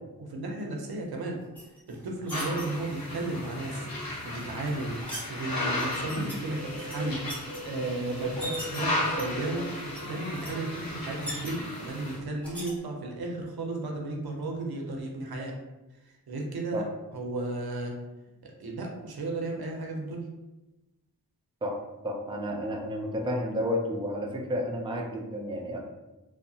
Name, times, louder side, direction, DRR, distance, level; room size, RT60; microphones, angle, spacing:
voice 1, 0.2-1.4 1.9-3.9 4.2-5.0 5.3-7.2 7.6-15.5 16.1-16.8 17.1-17.9 18.4-20.3, right 2 dB, 85° right, 1 dB, 0.5 m, -34 dB
sound 1, 1.5-2.6 4.4-5.3 5.8-6.3 6.7-7.6 8.1-8.8 9.2-9.6 9.9-10.0 10.3-10.5 10.8-11.8 12.4-12.7, equal, 5° left, 0.8 m, -40 dB
sound 2, 2.3-12.2, left 1 dB, 70° left, 0.8 m, -35 dB
voice 2, 22.0-25.8, equal, 15° right, 0 dB, 0.4 m, -31 dB
2.6 x 2.1 x 2.7 m, 1.0 s
wide cardioid pair, 70°, 36 cm